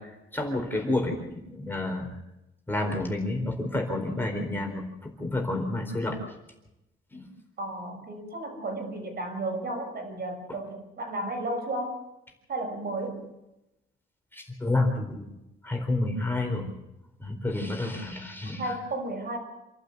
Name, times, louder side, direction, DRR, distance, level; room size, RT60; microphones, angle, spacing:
voice 1, 0.0-2.2 2.7-6.2 7.1-7.3 10.5-10.6 14.3-15.2 15.6-16.7 17.2-18.8, left 2 dB, 10° left, 1 dB, 4.3 m, -30 dB
voice 2, 7.6-12.0 12.5-13.3 18.6-19.4, right 2 dB, 50° right, 4 dB, 6.6 m, -33 dB
27.5 x 12.0 x 8.2 m, 0.92 s
cardioid pair, 130°, 21 cm